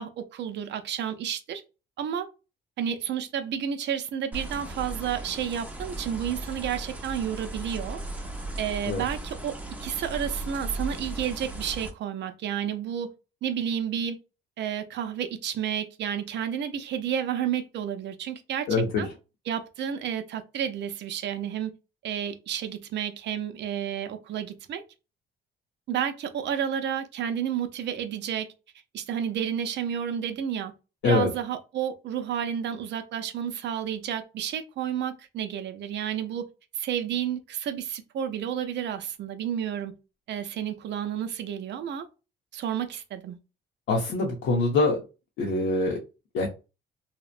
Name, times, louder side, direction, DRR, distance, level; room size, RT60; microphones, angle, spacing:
voice 1, 0.0-1.6 2.0-2.3 2.8-8.0 8.6-9.6 9.8-13.1 13.4-14.2 14.6-19.1 19.5-21.7 22.0-24.8 25.9-28.5 28.9-30.7 31.0-36.5 36.7-39.9 40.3-42.1 42.5-43.4, right 9 dB, 60° right, 0.5 m, -31 dB
sound 1, 4.3-11.9, right 2 dB, 5° right, 0.6 m, -36 dB
voice 2, 18.7-19.1 31.0-31.3 43.9-45.0 45.4-46.0 46.3-46.5, left 3 dB, 85° left, 0.7 m, -24 dB
2.8 x 2.0 x 2.4 m
cardioid pair, 90°, 20 cm